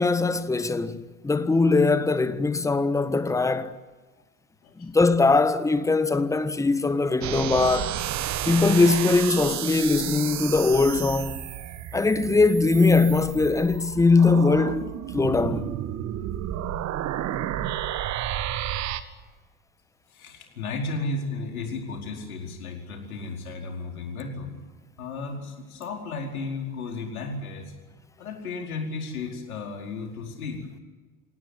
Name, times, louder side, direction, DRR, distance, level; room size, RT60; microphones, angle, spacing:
voice 1, 0.0-3.7 4.8-8.0 8.4-11.4 11.9-14.8 15.1-15.7, left 3 dB, 5° left, 1.4 m, -21 dB
sound 1, 7.2-19.0, right 11 dB, 40° right, 1.7 m, -31 dB
voice 2, 20.1-24.5 25.0-27.7 28.2-30.6, left 3 dB, 70° left, 4.8 m, -34 dB
27.5 x 18.5 x 9.7 m
figure-of-eight pair, 80°, 44 cm